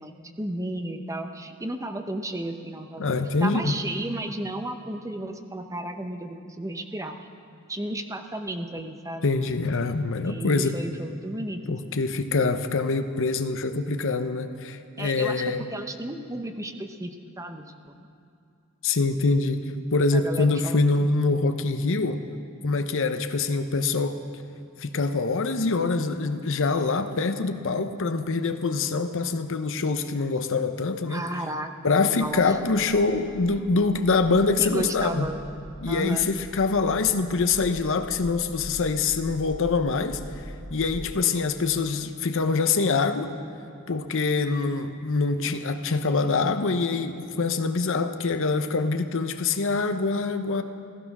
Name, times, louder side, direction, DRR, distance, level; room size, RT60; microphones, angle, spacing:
voice 1, 0.0-7.1 7.7-9.3 10.2-12.0 15.0-15.4 15.7-17.9 20.1-20.9 31.1-32.6 34.6-35.4 35.9-36.3, right 1 dB, 15° right, 6 dB, 0.8 m, -33 dB
voice 2, 3.0-3.7 9.2-10.8 11.7-15.6 18.8-19.6 19.9-22.2 22.6-24.2 24.8-31.2 31.8-35.3 35.8-40.4 40.7-43.3 43.9-50.6, left 4 dB, 65° left, 8 dB, 0.8 m, -25 dB
sound 1, 32.3-41.1, equal, 20° left, 1.8 m, -43 dB
15.5 x 15.0 x 6.1 m, 2.4 s
head